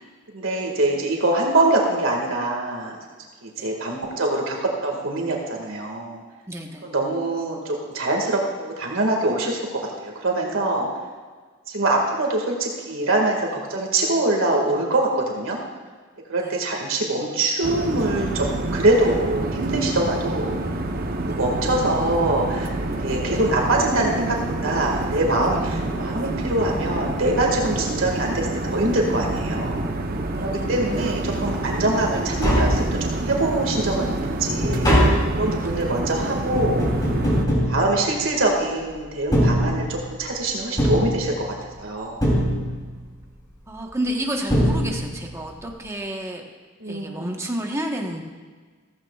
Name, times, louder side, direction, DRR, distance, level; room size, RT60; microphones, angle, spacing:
voice 1, 0.3-3.0 3.4-4.6 4.8-6.2 6.8-10.9 11.7-15.6 16.3-20.5 21.3-22.7 23.0-29.9 30.4-34.9 35.3-36.9 37.7-42.2 46.8-47.3, right 2 dB, 75° right, 0 dB, 2.0 m, -24 dB
voice 2, 6.5-6.8 21.3-21.4 30.3-30.6 35.6-35.7 43.7-46.4 46.9-48.2, right 1 dB, 15° right, 1 dB, 1.2 m, -30 dB
sound 1, 17.6-37.5, right 2 dB, 45° right, 0.8 m, -27 dB
Tap, 32.0-32.1 32.3-33.4 33.8-38.6 39.2-40.2 40.8-41.7 42.2-43.0 44.1-44.2 44.5-45.3 45.6-45.7, equal, 20° left, 3.1 m, -22 dB
15.0 x 15.0 x 2.4 m, 1.5 s
head